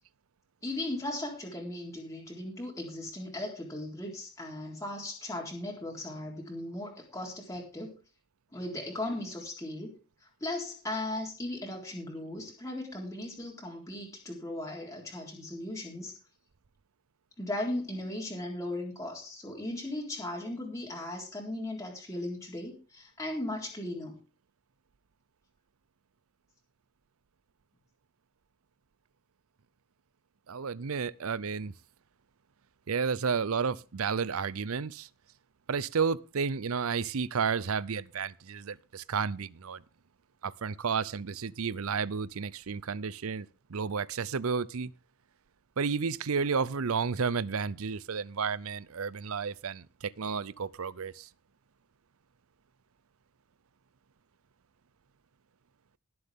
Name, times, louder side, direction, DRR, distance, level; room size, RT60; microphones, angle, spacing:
voice 1, 0.6-7.9 8.5-9.9 10.4-16.1 17.4-24.2, left 1 dB, 15° left, 3.7 m, -37 dB
voice 2, 30.5-31.7 32.9-35.1 35.7-39.8 40.4-44.9 45.8-51.3, right 5 dB, 75° right, 0.6 m, -32 dB
20.5 x 7.8 x 3.7 m
head